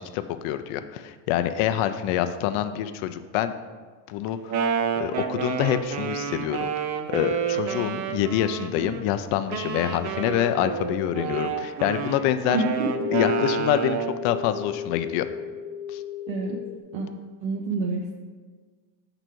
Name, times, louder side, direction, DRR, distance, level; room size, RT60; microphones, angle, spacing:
voice 1, 0.0-3.5 4.1-4.5 5.0-6.7 7.1-12.6 13.1-14.0 14.2-15.3 15.9-16.0, left 11 dB, 75° left, 11 dB, 0.5 m, -26 dB
Wind instrument woodwind instrument, 4.3-9.0 9.5-14.2, right 7 dB, 40° right, 0.5 m, -29 dB
sound 1, 11.3-16.8, left 9 dB, 40° left, 1.3 m, -35 dB
voice 2, 12.5-13.1 16.3-16.6 16.9-17.1 17.4-18.2, right 3 dB, 70° right, -1 dB, 0.8 m, -28 dB
6.1 x 3.9 x 4.5 m, 1.5 s
cardioid pair, 125°, 48 cm